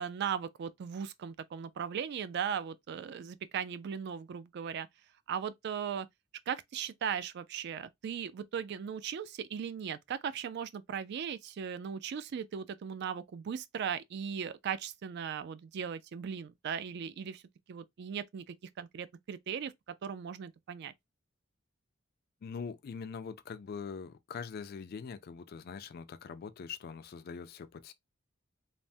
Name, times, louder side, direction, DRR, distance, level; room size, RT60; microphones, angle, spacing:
voice 1, 0.0-4.9 5.3-6.1 6.5-17.4 17.7-19.7 20.0-20.9, right 7 dB, 55° right, 0.3 m, -38 dB
voice 2, 22.4-27.9, left 6 dB, 50° left, 0.3 m, -43 dB
3.2 x 2.0 x 2.6 m
head